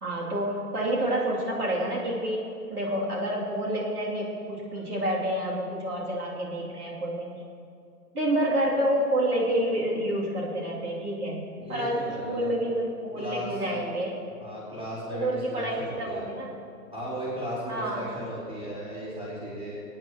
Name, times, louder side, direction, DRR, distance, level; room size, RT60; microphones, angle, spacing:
voice 1, 0.0-2.4 2.7-7.3 8.1-11.4 11.7-14.2 15.1-16.5 17.7-18.0, right 1 dB, 70° right, -5 dB, 3.0 m, -28 dB
voice 2, 11.6-12.5 13.2-13.6 14.4-16.3 16.9-19.8, equal, 10° right, -7 dB, 2.6 m, -36 dB
21.5 x 9.5 x 3.0 m, 2.4 s
figure-of-eight pair, 130°, 47 cm